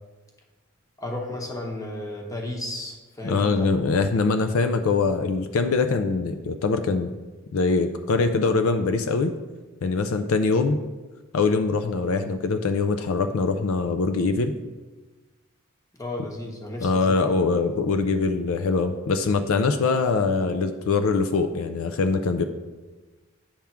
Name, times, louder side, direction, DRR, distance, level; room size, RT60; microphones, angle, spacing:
voice 1, 1.0-3.7 15.9-17.3, left 1 dB, 15° left, -1 dB, 1.0 m, -33 dB
voice 2, 3.2-7.1 7.5-9.3 9.8-10.8 11.3-14.6 16.8-22.4, left 4 dB, 65° left, 7 dB, 0.4 m, -23 dB
8.7 x 3.5 x 5.8 m, 1.2 s
head